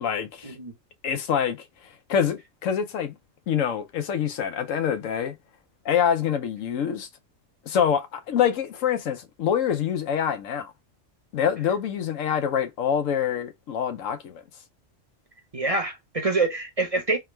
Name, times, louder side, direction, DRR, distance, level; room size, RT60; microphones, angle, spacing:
voice 1, 0.0-0.6 1.0-1.6 1.8-3.1 3.5-5.3 5.8-7.1 7.7-10.7 11.3-14.4, left 8 dB, 85° left, 1.1 m, -25 dB
voice 2, 15.5-17.2, right 3 dB, 35° right, 0.7 m, -26 dB
3.5 x 2.2 x 4.4 m
omnidirectional pair, 1.3 m